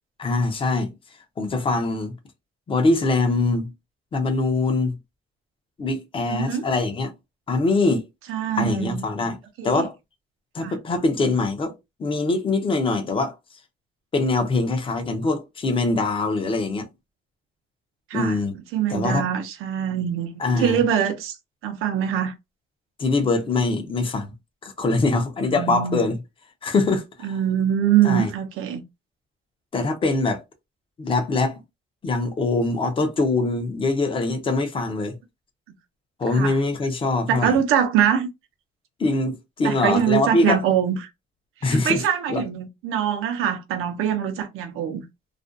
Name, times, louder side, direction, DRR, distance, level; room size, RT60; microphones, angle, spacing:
voice 1, 0.2-0.9 1.4-2.1 2.7-3.7 4.1-5.0 5.8-7.1 7.5-8.0 8.6-9.4 9.6-9.9 10.5-11.7 12.0-13.4 14.1-16.9 18.1-18.5 18.9-19.2 20.4-20.8 23.0-24.3 24.6-26.2 26.6-27.4 28.0-28.3 29.7-30.4 31.0-31.6 32.0-35.2 36.2-37.6 39.0-40.6 41.6-42.0 42.3-42.4, left 3 dB, 25° left, 0.5 m, -23 dB
voice 2, 6.3-6.7 8.3-9.0 9.6-9.9 10.6-10.7 18.1-18.4 18.7-21.3 21.6-22.3 25.5-26.0 27.2-28.8 36.3-36.6 37.3-38.3 39.6-41.0 41.6-45.0, right 9 dB, 75° right, 0.6 m, -23 dB
2.4 x 2.2 x 2.5 m
cardioid pair, 175°, 21 cm